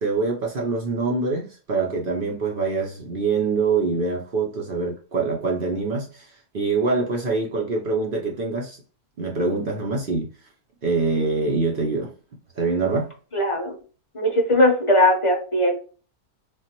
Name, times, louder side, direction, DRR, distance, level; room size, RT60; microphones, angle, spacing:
voice 1, 0.0-8.8 9.2-10.3 10.8-12.1 12.6-13.1, right 4 dB, 65° right, 0.5 m, -24 dB
voice 2, 13.3-13.7 14.1-15.7, left 1 dB, 30° left, 0.6 m, -19 dB
3.4 x 2.0 x 2.8 m
omnidirectional pair, 1.6 m